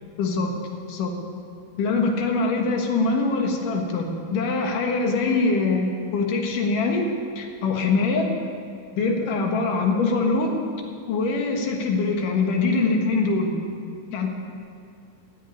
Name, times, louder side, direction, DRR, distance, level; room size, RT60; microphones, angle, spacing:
voice 1, 0.2-0.5 0.9-1.1 1.8-7.0 7.4-8.3 9.0-10.5 11.1-13.6 14.1-14.3, left 3 dB, 80° left, 2 dB, 3.2 m, -23 dB
15.0 x 8.5 x 10.0 m, 2.3 s
omnidirectional pair, 3.7 m